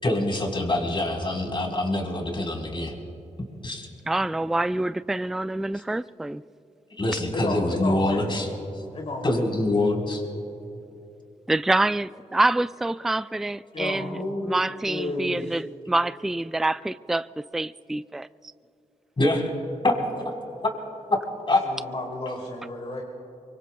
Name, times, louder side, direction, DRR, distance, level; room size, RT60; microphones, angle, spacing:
voice 1, 0.0-2.9 3.6-3.9 7.0-8.5 9.2-10.2 19.2-19.5 19.8-19.9 20.2-20.3 21.1-21.2 21.5-21.6, left 2 dB, 40° left, 0 dB, 4.0 m, -24 dB
voice 2, 4.1-6.4 11.5-14.2 14.4-17.3 17.5-18.3, right 2 dB, 5° right, 15 dB, 0.3 m, -26 dB
voice 3, 7.3-8.4 8.9-9.5 13.7-15.6 21.6-23.0, left 2 dB, 55° left, -2 dB, 2.8 m, -32 dB
24.5 x 24.0 x 2.3 m, 2.9 s
cardioid pair, 55°, 13 cm